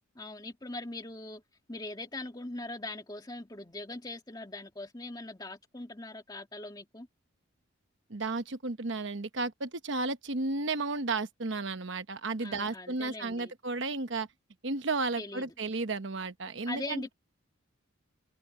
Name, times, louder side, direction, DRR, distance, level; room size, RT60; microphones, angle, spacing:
voice 1, 0.2-1.4 1.7-7.1 12.4-13.5 15.2-15.5 16.7-17.1, left 2 dB, 20° left, 1.9 m, -41 dB
voice 2, 8.1-14.3 14.6-17.1, right 3 dB, 60° right, 1.0 m, -33 dB
head